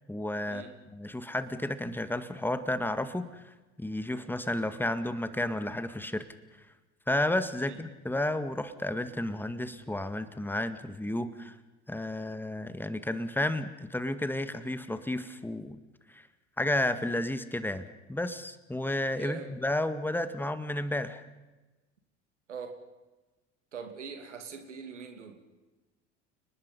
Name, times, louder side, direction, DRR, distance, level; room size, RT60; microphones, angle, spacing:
voice 1, 0.1-0.6 0.9-3.4 3.8-6.3 7.1-11.5 11.9-15.8 16.1-16.2 16.6-21.2, left 1 dB, 5° left, 11 dB, 1.9 m, -32 dB
voice 2, 19.2-19.6 22.5-22.8 23.7-25.4, right 6 dB, 85° right, 7 dB, 2.6 m, -42 dB
30.0 x 20.0 x 5.5 m, 1.1 s
figure-of-eight pair, 65°, 35 cm